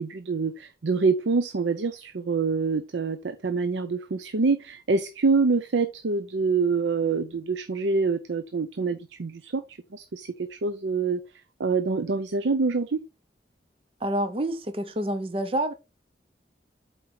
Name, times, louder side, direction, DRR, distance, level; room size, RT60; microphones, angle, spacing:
voice 1, 0.0-11.2 11.6-13.0, right 4 dB, 90° right, 0.6 m, -26 dB
voice 2, 14.0-15.7, right 1 dB, 30° right, 0.7 m, -28 dB
7.6 x 4.6 x 4.3 m
head